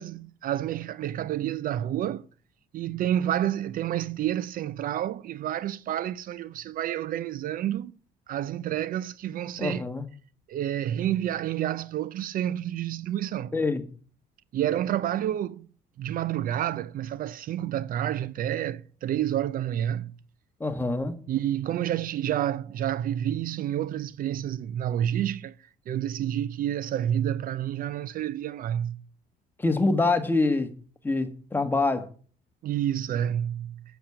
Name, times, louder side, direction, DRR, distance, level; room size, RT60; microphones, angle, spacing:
voice 1, 0.0-2.3 2.7-7.9 8.3-9.8 10.5-13.6 14.5-15.7 16.0-20.1 21.3-25.5 25.9-29.0 32.6-33.8, right 11 dB, 55° right, 0.5 m, -29 dB
voice 2, 9.6-10.0 13.5-13.8 20.6-21.2 29.6-30.7 31.0-32.1, left 3 dB, 10° left, 1.7 m, -25 dB
8.7 x 7.3 x 8.6 m
cardioid pair, 110°, 17 cm